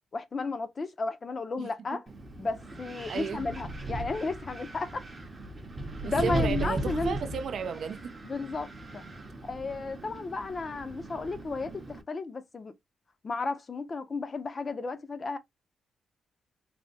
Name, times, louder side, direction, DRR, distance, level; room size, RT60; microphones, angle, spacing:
voice 1, 0.1-2.0 2.4-5.0 6.0-7.2 8.2-9.0 9.4-12.7 13.2-15.4, left 3 dB, 30° left, 0.5 m, -33 dB
voice 2, 1.6-2.0 3.1-3.4 6.0-8.2, right 6 dB, 60° right, 0.4 m, -34 dB
Wind, 2.1-12.0, right 1 dB, 25° right, 0.7 m, -37 dB
3.4 x 2.7 x 2.6 m
wide cardioid pair, 145°, 0 cm